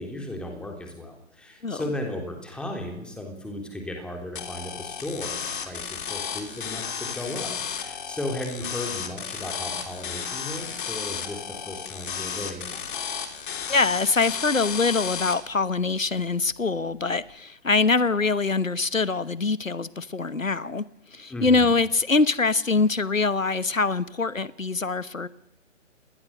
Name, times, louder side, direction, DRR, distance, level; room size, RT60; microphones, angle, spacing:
voice 1, 0.0-13.0 21.3-21.7, left 1 dB, ahead, 3.3 m, -35 dB
sound 1, 4.4-15.4, left 7 dB, 40° left, 3.3 m, -33 dB
voice 2, 13.7-20.8 21.1-25.3, left 4 dB, 90° left, 1.2 m, -24 dB
28.5 x 20.5 x 6.6 m
figure-of-eight pair, 140°, 39 cm